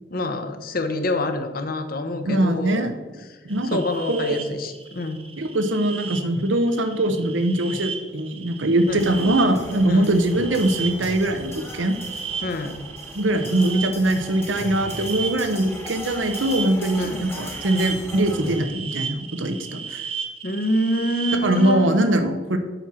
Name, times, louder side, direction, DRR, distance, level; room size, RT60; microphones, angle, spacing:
voice 1, 0.1-2.9 3.3-5.2 8.9-9.0 9.9-10.1 12.4-12.8 17.0-17.3 20.4-22.1, left 1 dB, 50° left, 8 dB, 0.8 m, -27 dB
voice 2, 2.3-2.9 3.4-3.8 4.1-4.4 5.4-11.9 13.1-20.0 21.4-22.6, right 1 dB, 85° right, 8 dB, 0.9 m, -22 dB
sound 1, 3.5-21.7, right 6 dB, 30° right, 0.7 m, -35 dB
sound 2, 8.9-18.6, left 1 dB, 15° left, 1.3 m, -38 dB
8.0 x 4.3 x 6.2 m, 1.3 s
head